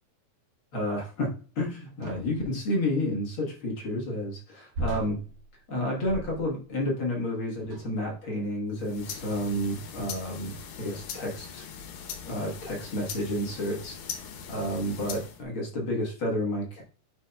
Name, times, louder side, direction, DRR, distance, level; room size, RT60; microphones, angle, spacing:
voice 1, 0.7-5.2 5.7-11.6 12.2-14.0 14.5-16.8, left 1 dB, 55° left, -2 dB, 1.6 m, -30 dB
sound 1, 2.0-2.5 4.7-6.7 7.6-8.1 8.9-9.1 10.0-10.4, right 1 dB, 60° right, 2.5 m, -38 dB
sound 2, 8.7-15.4, left 7 dB, 80° left, 2.5 m, -41 dB
9.4 x 4.5 x 2.3 m, 0.39 s
omnidirectional pair, 3.8 m